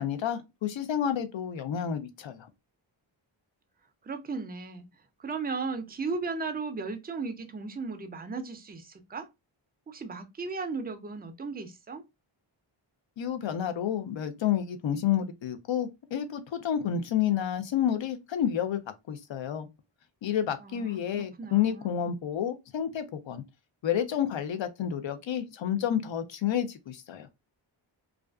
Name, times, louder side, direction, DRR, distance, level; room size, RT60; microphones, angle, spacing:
voice 1, 0.0-2.5 13.2-18.8 19.1-19.7 20.2-23.4 23.8-27.3, left 9 dB, 65° left, 0.6 m, -30 dB
voice 2, 4.0-4.9 5.2-9.3 9.9-12.0 20.6-22.1, right 4 dB, 20° right, 0.4 m, -36 dB
2.4 x 2.3 x 2.2 m
wide cardioid pair, 75°, 49 cm